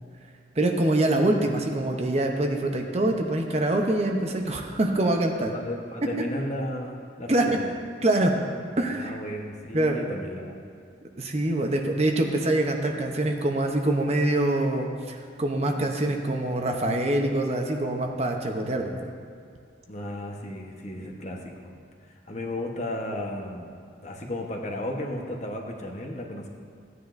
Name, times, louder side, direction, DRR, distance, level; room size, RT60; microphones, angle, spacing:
voice 1, 0.6-5.5 6.2-6.3 7.3-7.7 8.0-8.3 8.8-9.1 9.7-10.0 11.2-18.9 21.0-21.1, right 1 dB, 35° right, 3 dB, 0.7 m, -25 dB
voice 2, 5.5-7.5 8.9-10.6 19.9-21.8 22.3-23.7 24.0-26.5, left 1 dB, 40° left, 1 dB, 1.0 m, -34 dB
15.5 x 9.6 x 2.6 m, 2.4 s
head